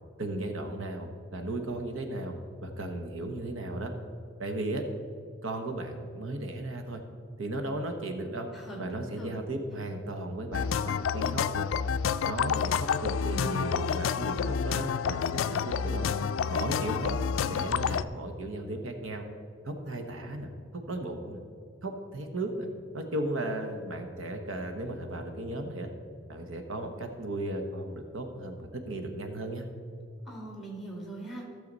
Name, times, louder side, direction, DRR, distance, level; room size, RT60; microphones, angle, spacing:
voice 1, 0.2-2.3 2.6-3.9 4.4-4.8 5.4-7.0 7.4-8.5 8.8-11.7 12.2-16.1 16.5-17.1 17.5-19.3 19.6-21.4 21.8-25.9 26.3-29.7, right 1 dB, 85° right, 5 dB, 1.1 m, -35 dB
voice 2, 8.5-9.4 30.3-31.5, right 2 dB, ahead, -1 dB, 2.1 m, -41 dB
sound 1, 10.5-18.0, left 7 dB, 80° left, 0.3 m, -29 dB
15.0 x 6.7 x 4.0 m, 2.2 s
head